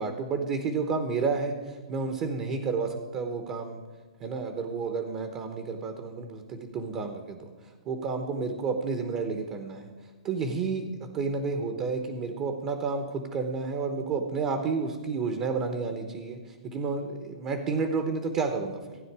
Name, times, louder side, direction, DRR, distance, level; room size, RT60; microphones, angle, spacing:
voice 1, 0.0-3.8 4.2-9.9 10.2-19.0, right 4 dB, 25° right, 6 dB, 1.0 m, -31 dB
16.0 x 9.4 x 4.8 m, 1.4 s
hypercardioid pair, 155°, 3 cm